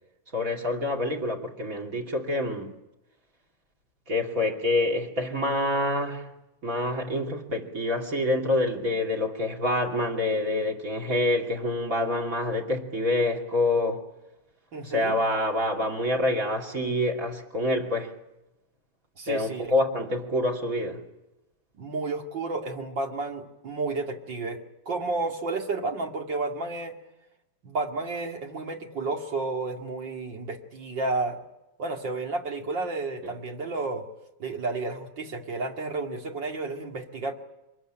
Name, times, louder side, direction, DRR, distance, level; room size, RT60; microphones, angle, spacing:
voice 1, 0.3-2.7 4.1-6.3 6.6-14.0 14.8-18.2 19.3-21.0 33.2-33.4, left 1 dB, 40° right, 3.3 m, -27 dB
voice 2, 14.7-15.1 19.2-19.7 21.8-27.0 27.6-31.4 31.8-34.1 34.4-37.3, right 3 dB, 55° right, 3.0 m, -31 dB
25.5 x 21.0 x 9.0 m
omnidirectional pair, 2.4 m